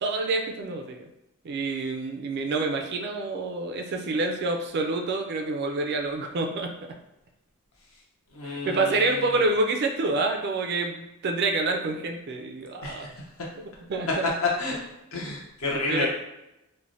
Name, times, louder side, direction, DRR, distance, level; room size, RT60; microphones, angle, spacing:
voice 1, 0.0-1.1 1.4-6.7 8.4-13.1 13.6-14.2 15.9-16.1, right 3 dB, 50° right, 3 dB, 0.3 m, -27 dB
voice 2, 8.3-9.3 12.8-13.1 14.6-14.8 15.1-16.1, left 2 dB, 65° left, -3 dB, 0.7 m, -31 dB
3.2 x 2.1 x 2.5 m, 0.90 s
head